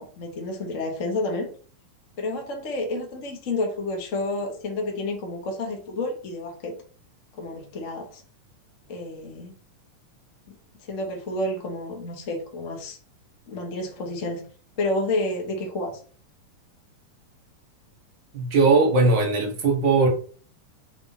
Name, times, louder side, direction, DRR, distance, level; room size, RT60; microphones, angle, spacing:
voice 1, 0.0-1.5 2.2-6.7 7.4-8.2 8.9-9.5 10.5-10.6 10.8-13.0 13.5-14.4 14.8-16.0, left 2 dB, 65° left, 0.7 m, -30 dB
voice 2, 18.3-20.1, right 3 dB, 60° right, 1.1 m, -19 dB
5.9 x 4.4 x 4.0 m
omnidirectional pair, 4.0 m